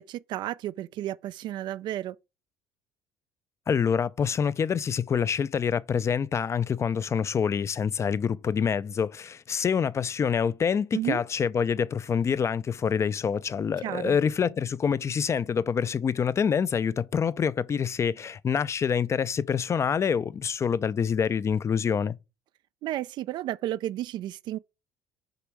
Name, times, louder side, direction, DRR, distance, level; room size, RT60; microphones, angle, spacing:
voice 1, 0.0-2.2 10.9-11.2 13.8-14.2 22.8-24.6, right 13 dB, 60° right, 0.4 m, -32 dB
voice 2, 3.7-22.2, left 7 dB, 35° left, 0.6 m, -26 dB
6.8 x 5.2 x 4.6 m
supercardioid pair, 85°, 9 cm